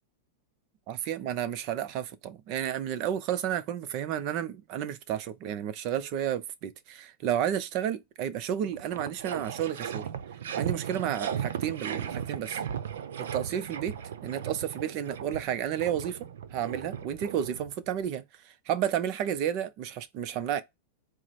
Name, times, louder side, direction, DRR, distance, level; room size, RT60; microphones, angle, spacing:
voice 1, 0.9-10.1 10.6-12.6 13.2-16.2 16.5-20.6, right 10 dB, 45° right, 0.6 m, -32 dB
sound 1, 8.2-8.3 8.6-18.0, right 8 dB, 85° right, 0.7 m, -36 dB
4.6 x 2.1 x 4.2 m
supercardioid pair, 145°, 0 cm